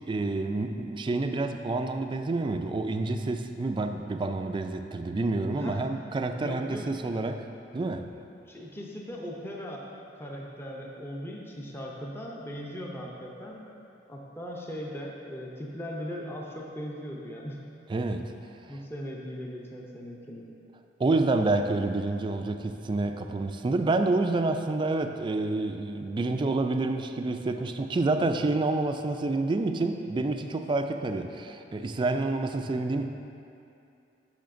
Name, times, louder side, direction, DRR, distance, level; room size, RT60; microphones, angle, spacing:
voice 1, 0.0-7.4 7.7-8.1 17.9-18.3 21.0-33.1, right 2 dB, 25° right, 6 dB, 0.3 m, -28 dB
voice 2, 5.5-5.9 6.4-7.0 8.5-9.9 10.1-13.7 14.1-17.6 18.7-20.5, equal, 15° left, -2 dB, 0.6 m, -39 dB
10.5 x 6.5 x 2.6 m, 2.7 s
head